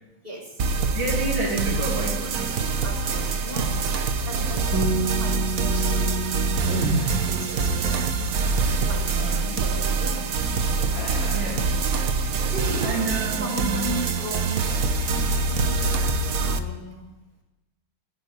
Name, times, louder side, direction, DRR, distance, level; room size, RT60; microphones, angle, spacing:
voice 1, 0.2-0.6 2.8-3.9 4.2-6.2 6.7-8.1 8.5-10.3 12.5-13.1 13.4-15.1 15.4-16.1 16.3-17.1, equal, 25° right, -1 dB, 5.3 m, -36 dB
sound 1, 0.6-16.6, right 4 dB, 50° right, 1.3 m, -25 dB
voice 2, 1.0-2.5 9.1-9.4 11.3-11.7 12.8-13.8, right 3 dB, 80° right, -2 dB, 3.5 m, -29 dB
sound 2, 3.0-3.7 6.6-7.7 10.9-12.4 12.9-13.1 15.1-15.6, equal, 45° left, 3.1 m, -33 dB
Bass guitar, 4.7-11.0, right 5 dB, 10° right, 1.7 m, -32 dB
15.0 x 10.0 x 8.9 m, 1.0 s
omnidirectional pair, 2.1 m